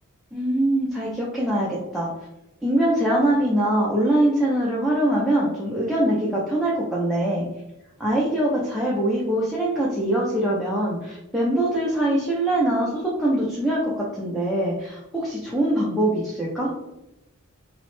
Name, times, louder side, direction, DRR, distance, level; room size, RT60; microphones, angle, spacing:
voice 1, 0.3-2.1 2.6-7.5 8.0-16.7, right 1 dB, ahead, -6 dB, 0.4 m, -23 dB
2.9 x 2.0 x 3.0 m, 0.91 s
head